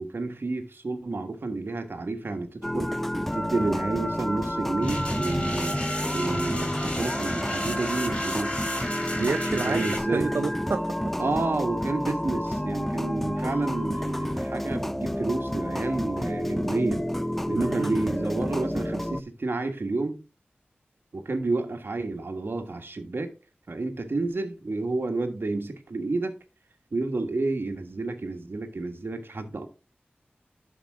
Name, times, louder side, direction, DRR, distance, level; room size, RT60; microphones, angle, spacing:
voice 1, 0.0-2.9 3.3-5.8 6.1-8.6 9.6-10.3 11.2-17.1 17.5-20.2 21.1-23.3 23.7-26.3 26.9-29.7, right 3 dB, 70° right, 1.5 m, -30 dB
sound 1, 2.6-19.2, equal, 5° left, 0.4 m, -30 dB
sound 2, 4.8-10.0, left 1 dB, 30° left, 4.5 m, -33 dB
voice 2, 9.2-11.0 17.5-18.1, right 4 dB, 85° right, 0.5 m, -29 dB
11.5 x 5.1 x 3.5 m
wide cardioid pair, 45°, 4 cm